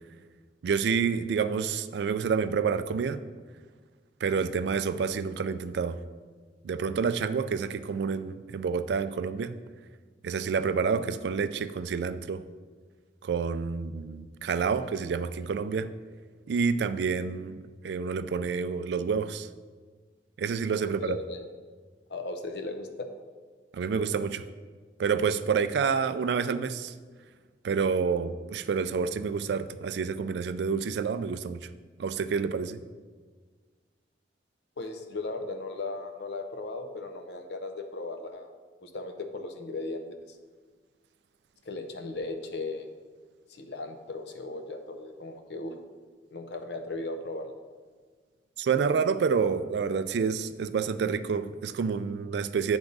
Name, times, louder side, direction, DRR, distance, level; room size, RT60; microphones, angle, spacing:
voice 1, 0.6-3.2 4.2-6.0 6.6-9.6 10.2-12.4 13.2-15.9 16.5-19.5 20.4-21.2 23.7-24.4 25.0-26.9 27.6-31.7 32.0-32.8 48.6-52.8, right 5 dB, 70° right, 12 dB, 0.3 m, -28 dB
voice 2, 21.0-21.4 22.1-23.1 34.8-38.5 38.8-40.0 41.6-42.9 43.5-45.7 46.3-47.5, left 2 dB, 70° left, 6 dB, 0.7 m, -37 dB
9.8 x 3.5 x 3.9 m, 1.5 s
head